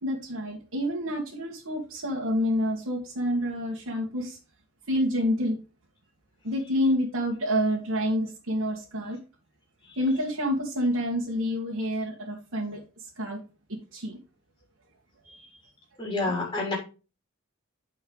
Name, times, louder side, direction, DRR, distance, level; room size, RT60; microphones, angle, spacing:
voice 1, 0.0-4.4 4.9-5.6 6.4-9.2 10.0-13.4 13.7-14.2 16.2-16.3, equal, 85° right, -3 dB, 1.9 m, -28 dB
voice 2, 16.0-16.7, left 3 dB, 20° left, -2 dB, 3.3 m, -28 dB
9.1 x 5.6 x 4.0 m, 0.32 s
head